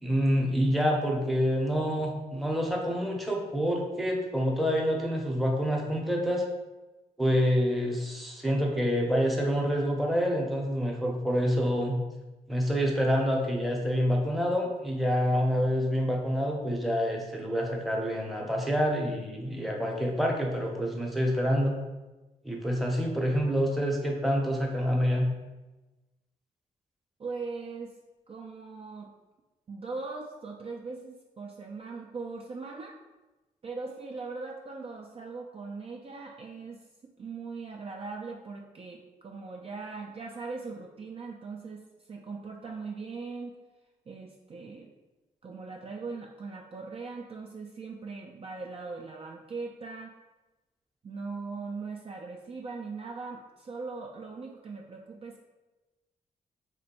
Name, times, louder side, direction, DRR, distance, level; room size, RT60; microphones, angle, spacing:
voice 1, 0.0-6.4 7.2-12.0 12.5-21.7 22.4-25.3, equal, ahead, 0 dB, 0.7 m, -27 dB
voice 2, 27.2-27.9 28.3-29.1 29.7-33.0 33.6-43.6 44.1-44.9 45.4-50.1 51.0-55.4, right 4 dB, 35° right, 0 dB, 0.4 m, -40 dB
3.1 x 2.2 x 2.9 m, 1.1 s
supercardioid pair, 40°, 16 cm